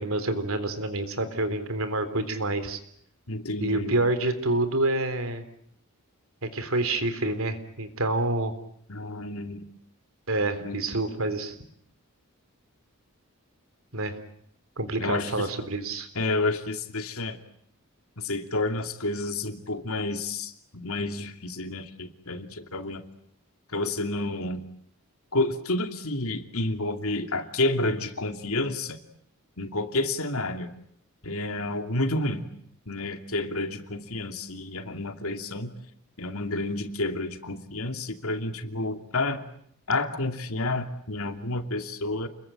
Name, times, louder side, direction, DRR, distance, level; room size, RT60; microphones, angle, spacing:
voice 1, 0.0-2.8 3.6-5.4 6.4-8.5 10.3-11.5 13.9-14.2 14.8-16.1, right 2 dB, 65° right, 10 dB, 3.7 m, -27 dB
voice 2, 3.3-3.9 8.9-9.7 10.6-10.8 15.0-15.5 16.1-17.4 18.2-23.0 23.7-24.7 25.3-29.0 29.6-30.7 31.2-32.4 32.9-35.7 36.2-39.4 39.9-42.3, left 2 dB, 75° left, 7 dB, 2.7 m, -30 dB
30.0 x 21.5 x 8.9 m, 0.69 s
head